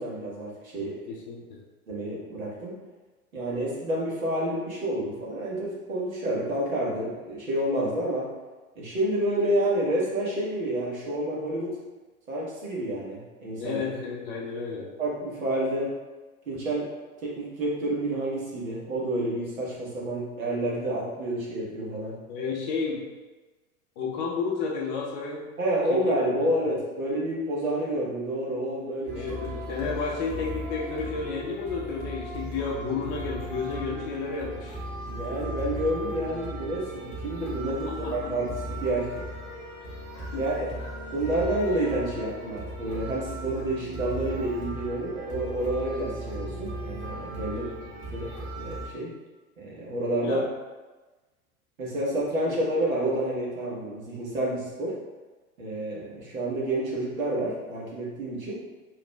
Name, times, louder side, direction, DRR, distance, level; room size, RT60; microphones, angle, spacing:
voice 1, 0.0-1.1 1.9-2.7 3.3-8.3 8.7-11.8 12.3-13.8 15.0-15.9 16.5-16.9 17.2-22.2 25.6-29.2 35.1-39.2 40.4-40.7 41.1-47.7 48.1-48.3 48.5-49.1 49.6-50.4 51.8-55.0 55.6-58.6, right 1 dB, 65° right, -5 dB, 1.4 m, -29 dB
voice 2, 1.1-1.6 13.6-14.9 22.3-23.0 24.0-25.5 25.9-26.2 26.7-26.8 29.1-34.8 37.7-38.3 40.3-40.7 47.5-47.8 50.2-50.4 52.4-52.5, left 5 dB, 30° left, -2 dB, 0.6 m, -32 dB
sound 1, 29.1-48.9, right 1 dB, 35° right, 1.1 m, -37 dB
4.7 x 3.1 x 2.3 m, 1.2 s
figure-of-eight pair, 95°, 43 cm